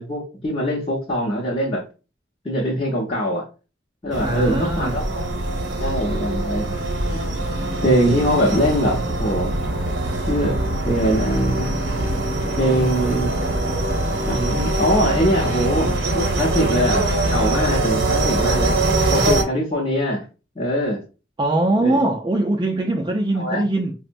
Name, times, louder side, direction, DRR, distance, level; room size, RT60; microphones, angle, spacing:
voice 1, 0.0-1.9 2.4-3.5 4.0-5.3 5.8-7.2 7.8-9.6 10.3-11.7 12.6-13.3 14.3-18.8 19.1-20.2 20.6-21.0 21.8-22.0 23.3-23.6, equal, 30° left, 0.7 m, -22 dB
sound 1, 4.1-19.4, right 2 dB, 65° right, 0.7 m, -23 dB
voice 2, 4.2-5.0 21.4-23.9, right 2 dB, 25° right, 0.3 m, -21 dB
5.2 x 2.0 x 2.6 m
head